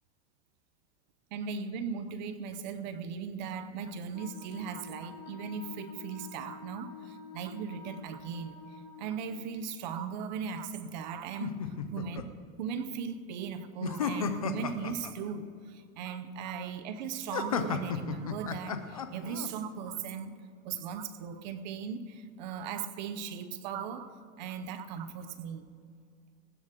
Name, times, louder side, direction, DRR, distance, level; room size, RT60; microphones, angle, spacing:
voice 1, 1.3-12.2 12.6-20.4 20.6-25.7, right 6 dB, 30° right, 11 dB, 0.7 m, -38 dB
Wind instrument woodwind instrument, 4.1-9.3, left 4 dB, 45° left, 2.1 m, -49 dB
sound 1, 11.4-12.2 13.8-15.1 17.3-19.5, left 7 dB, 30° left, 0.3 m, -33 dB
19.0 x 7.1 x 9.0 m, 2.3 s
supercardioid pair, 175°, 44 cm